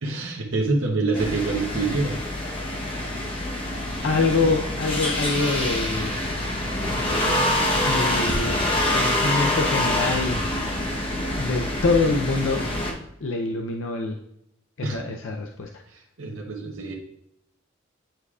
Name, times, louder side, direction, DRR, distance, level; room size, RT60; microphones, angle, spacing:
voice 1, 0.0-2.2 4.4-4.5 14.8-15.2 15.9-16.9, right 3 dB, 80° right, 0 dB, 0.9 m, -26 dB
sound 1, 1.1-12.9, left 1 dB, 30° left, 0.9 m, -25 dB
voice 2, 4.0-6.1 7.9-8.6 8.9-10.4 11.3-12.7 13.2-14.2 14.8-15.7, left 3 dB, 80° left, 2 dB, 0.5 m, -25 dB
9.1 x 4.8 x 2.4 m, 0.78 s
head